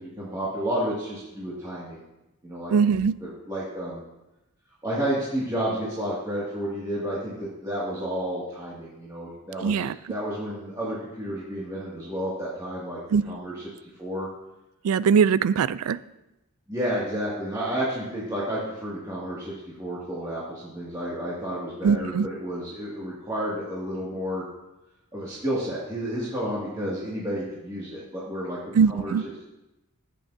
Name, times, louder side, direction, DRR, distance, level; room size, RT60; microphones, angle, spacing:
voice 1, 0.0-2.0 2.4-2.7 3.2-4.0 4.8-9.8 10.1-13.0 13.3-13.5 14.0-14.3 16.7-24.4 25.1-29.1, equal, 15° right, -9 dB, 2.1 m, -31 dB
voice 2, 2.7-3.1 9.6-10.0 13.1-13.2 14.8-16.0 21.8-22.3 28.7-29.2, right 6 dB, 75° right, 17 dB, 0.3 m, -21 dB
14.0 x 8.6 x 2.7 m, 0.95 s
head